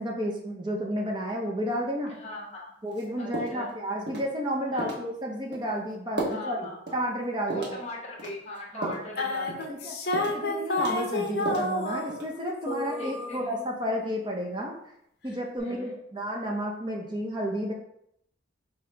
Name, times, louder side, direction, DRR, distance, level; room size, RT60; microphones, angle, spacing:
voice 1, 0.0-2.1 2.8-7.8 8.7-9.0 9.7-10.0 10.3-14.7 15.2-17.7, equal, 25° right, 0 dB, 0.5 m, -31 dB
voice 2, 2.1-2.7 3.2-3.7 4.7-5.1 6.2-7.0 7.5-9.9 10.1-10.5 13.0-13.4 15.6-16.0, left 1 dB, 35° left, -2 dB, 1.1 m, -41 dB
sound 1, 2.9-3.0 3.3-3.7 4.1-4.3 4.8-5.0 5.5-5.7 6.2-6.4 6.9-7.0 7.5-7.8 8.2-9.1 9.5-9.7 10.1-10.5 10.8-11.7 12.1-12.5, right 2 dB, 60° right, 1.2 m, -34 dB
sound 2, 9.2-12.4 12.7-13.8, left 2 dB, 55° left, 0.7 m, -30 dB
5.2 x 2.9 x 3.3 m, 0.74 s
head